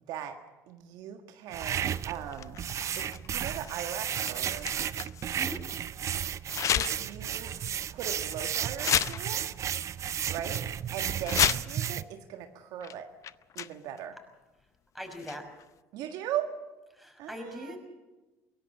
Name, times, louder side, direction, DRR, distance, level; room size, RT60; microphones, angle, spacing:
voice 1, 0.1-0.4 0.7-2.6 3.0-4.8 6.7-7.5 7.9-9.5 10.3-10.7 10.9-13.1 13.6-14.2 15.9-16.5 17.2-17.8, right 9 dB, 70° right, 6 dB, 1.6 m, -39 dB
sound 1, 1.5-12.0, right 9 dB, 45° right, 0.6 m, -33 dB
sound 2, 1.7-5.6 6.5-7.2 7.6-7.7 8.3-8.4 8.8-9.8 10.2-10.6 11.1-11.9 12.8-12.9 13.2-14.0 15.1-15.6, left 10 dB, 50° left, 0.6 m, -33 dB
voice 2, 5.4-5.7 14.9-15.5 16.9-17.8, equal, ahead, 4 dB, 5.7 m, -41 dB
22.5 x 17.5 x 7.3 m, 1.1 s
supercardioid pair, 80°, 7 cm